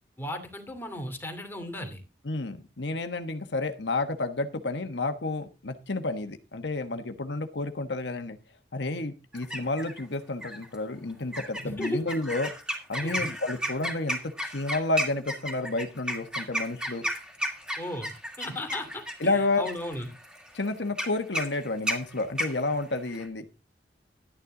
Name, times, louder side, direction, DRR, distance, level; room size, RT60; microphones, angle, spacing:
voice 1, 0.2-2.0 11.6-12.0 13.0-13.3 17.8-18.1 18.4-20.1, left 1 dB, 10° left, 4 dB, 2.6 m, -35 dB
voice 2, 2.3-8.4 8.7-12.5 12.9-17.0 19.2-19.6 20.5-23.5, left 2 dB, 80° left, 8 dB, 1.3 m, -30 dB
sound 1, 9.3-10.0 10.4-10.8 11.3-23.3, equal, 5° right, 2.5 m, -33 dB
12.5 x 9.8 x 3.8 m, 0.30 s
head